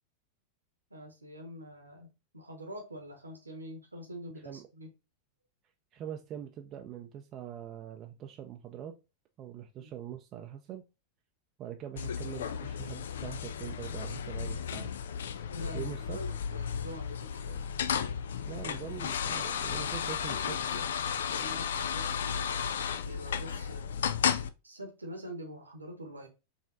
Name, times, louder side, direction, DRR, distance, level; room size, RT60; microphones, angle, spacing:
voice 1, 0.9-4.9 9.8-9.9 15.5-17.6 20.0-20.9 21.2-22.5 23.0-23.9 24.6-26.3, equal, 80° right, 1.1 m, -45 dB
voice 2, 5.9-9.0 9.4-10.9 11.6-14.9 15.7-16.2 18.5-20.6, right 10 dB, 35° right, 0.5 m, -43 dB
sound 1, 12.0-24.5, left 7 dB, 65° left, 0.3 m, -34 dB
5.1 x 3.3 x 2.6 m
figure-of-eight pair, 90°, 0 cm